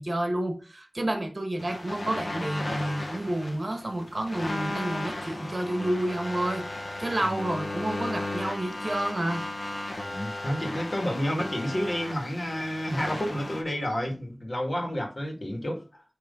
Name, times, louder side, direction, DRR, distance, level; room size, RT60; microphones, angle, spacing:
voice 1, 0.0-9.4, right 1 dB, 50° right, 1.4 m, -30 dB
sound 1, 1.6-13.6, left 2 dB, 75° left, 1.4 m, -35 dB
voice 2, 10.0-16.0, equal, 45° left, 2.0 m, -30 dB
9.6 x 3.3 x 3.8 m
wide cardioid pair, 60°, 0 cm